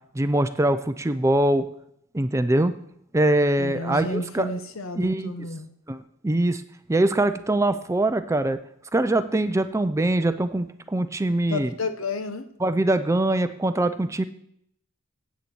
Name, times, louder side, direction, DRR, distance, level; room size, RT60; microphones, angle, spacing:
voice 1, 0.1-1.7 2.1-2.8 3.1-4.5 5.0-5.4 5.9-6.6 6.9-8.6 8.9-11.7 12.6-14.2, right 1 dB, 15° right, 10 dB, 0.4 m, -23 dB
voice 2, 3.6-5.7 11.5-12.5, left 2 dB, 70° left, 9 dB, 1.0 m, -31 dB
8.4 x 6.9 x 7.8 m, 0.70 s
head